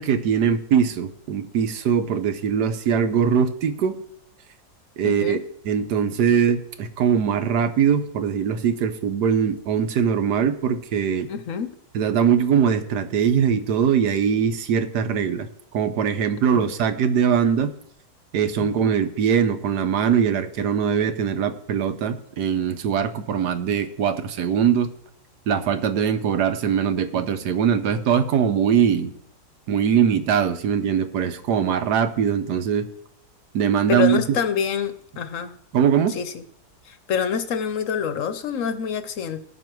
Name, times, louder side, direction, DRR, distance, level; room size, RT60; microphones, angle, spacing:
voice 1, 0.0-4.0 5.0-5.4 5.6-11.3 11.9-17.7 18.3-24.9 25.5-29.1 29.7-32.9 33.5-34.4 35.7-36.2, right 7 dB, 80° right, 9 dB, 1.4 m, -21 dB
voice 2, 5.0-5.4 11.3-11.7 16.5-16.7 18.6-18.7 33.9-35.5 36.1-36.4 36.9-39.4, left 7 dB, 60° left, 10 dB, 1.1 m, -26 dB
17.5 x 6.2 x 4.6 m, 0.69 s
omnidirectional pair, 1.7 m